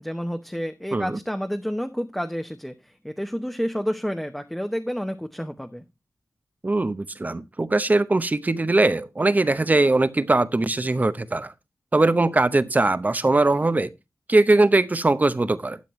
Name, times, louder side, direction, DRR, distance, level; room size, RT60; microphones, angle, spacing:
voice 1, 0.0-5.8, equal, 5° left, 0.8 m, -30 dB
voice 2, 6.6-11.5 11.9-13.9 14.3-15.8, right 2 dB, 30° right, 0.7 m, -21 dB
12.5 x 9.0 x 3.1 m
wide cardioid pair, 105°, 6 cm